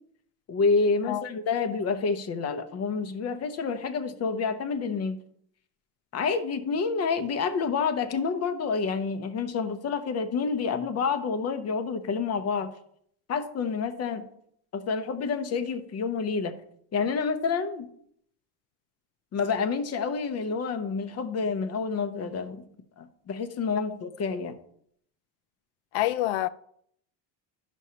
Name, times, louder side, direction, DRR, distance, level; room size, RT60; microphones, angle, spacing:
voice 1, 0.5-5.2 6.1-12.7 13.3-14.3 14.7-16.6 16.9-17.9 19.3-22.6 23.0-24.6, left 5 dB, 35° left, 0.7 m, -28 dB
voice 2, 25.9-26.5, left 15 dB, 80° left, 0.5 m, -26 dB
10.5 x 6.3 x 2.8 m
cardioid pair, 135°, 47 cm